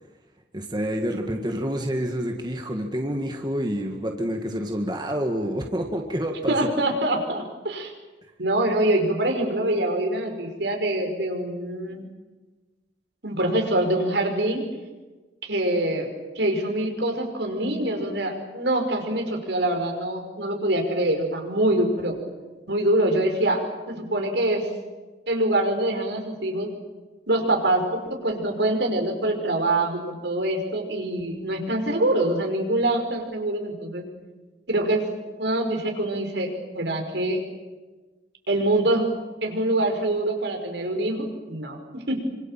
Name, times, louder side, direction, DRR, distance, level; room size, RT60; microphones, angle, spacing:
voice 1, 0.5-6.6, equal, 25° right, 3 dB, 2.0 m, -28 dB
voice 2, 6.5-7.9 8.4-12.0 13.2-14.6 15.4-16.1 16.4-22.2 22.7-23.6 23.9-24.6 25.3-26.7 27.3-34.1 34.7-35.0 35.4-37.4 38.5-39.1 39.4-42.2, right 1 dB, 75° right, 4 dB, 5.2 m, -24 dB
26.5 x 26.0 x 7.5 m, 1.2 s
head